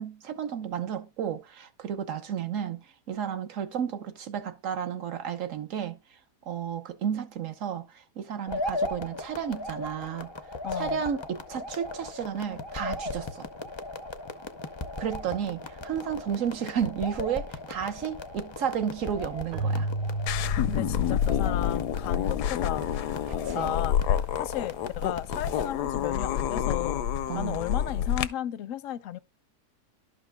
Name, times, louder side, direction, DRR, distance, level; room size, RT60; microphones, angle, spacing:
voice 1, 0.0-6.0 6.5-10.3 10.7-13.5 15.0-19.9 23.4-23.7 27.3-27.7, right 8 dB, 55° right, 1.3 m, -32 dB
sound 1, 8.5-25.7, left 2 dB, 45° left, 0.3 m, -37 dB
voice 2, 10.6-11.0 20.7-22.9 23.5-27.0 27.3-29.2, left 12 dB, 70° left, 0.8 m, -34 dB
Keyboard (musical), 19.5-23.0, right 2 dB, 90° right, 1.3 m, -33 dB
sound 2, 20.3-28.3, left 10 dB, 85° left, 1.2 m, -28 dB
12.0 x 5.2 x 2.2 m
omnidirectional pair, 1.7 m